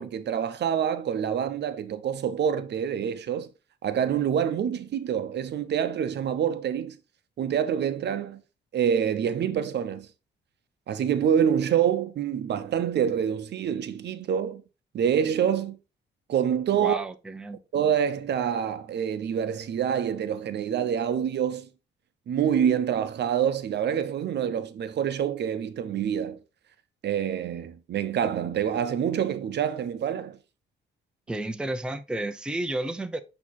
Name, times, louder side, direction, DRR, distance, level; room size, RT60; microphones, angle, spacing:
voice 1, 0.0-3.5 3.8-7.0 7.4-8.4 8.7-10.1 10.9-14.6 14.9-15.8 16.3-17.0 17.7-21.7 22.3-26.4 27.0-30.4, right 8 dB, 60° right, 0.7 m, -26 dB
voice 2, 16.8-17.6 31.3-33.2, right 1 dB, 5° right, 0.6 m, -31 dB
8.2 x 3.0 x 4.0 m
cardioid pair, 90°, 20 cm